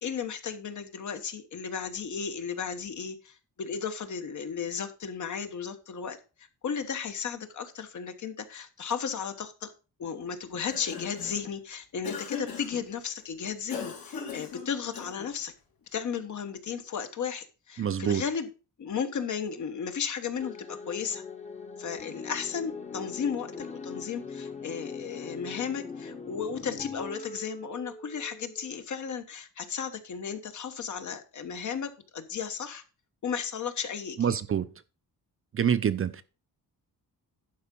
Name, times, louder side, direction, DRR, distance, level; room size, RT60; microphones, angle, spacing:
voice 1, 0.0-9.7 10.0-15.5 15.9-18.5 18.8-21.2 21.8-32.8 33.2-34.3, left 6 dB, 50° left, 1.2 m, -34 dB
Cough, 10.5-11.5 12.0-12.9 13.7-15.4, left 6 dB, 70° left, 3.0 m, -39 dB
voice 2, 17.8-18.2 34.2-34.7 35.5-36.2, right 8 dB, 35° right, 0.5 m, -26 dB
sound 1, 20.4-28.8, left 4 dB, 20° left, 1.0 m, -41 dB
11.5 x 4.7 x 5.4 m
wide cardioid pair, 140°, 37 cm